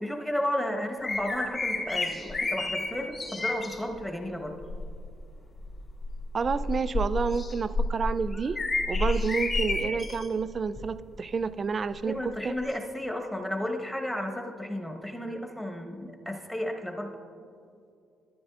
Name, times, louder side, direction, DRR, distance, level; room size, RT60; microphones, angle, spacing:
voice 1, 0.0-4.6 12.1-17.1, left 1 dB, 5° left, 3 dB, 1.1 m, -33 dB
sound 1, 1.0-3.8 4.6-5.0 5.6-10.3 10.8-10.9 12.7-12.8, left 2 dB, 35° left, 2.4 m, -30 dB
voice 2, 6.3-8.6 8.9-12.5, right 5 dB, 40° right, 14 dB, 0.3 m, -29 dB
13.0 x 10.0 x 2.4 m, 2.5 s
cardioid pair, 90°, 0 cm